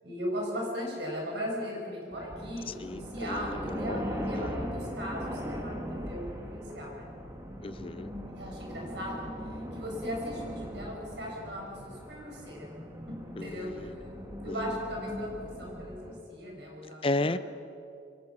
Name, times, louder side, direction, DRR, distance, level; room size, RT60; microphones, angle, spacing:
voice 1, 0.0-7.1 8.3-12.7 13.1-13.2 13.4-14.2 14.4-17.3, equal, 65° right, -1 dB, 6.1 m, -38 dB
sound 1, 2.1-16.2, equal, 15° right, 1.9 m, -39 dB
voice 2, 2.7-4.6 7.6-8.1 13.4-14.0 14.5-14.7 17.0-17.4, left 2 dB, 30° left, 14 dB, 0.6 m, -34 dB
24.0 x 18.0 x 6.1 m, 2.7 s
head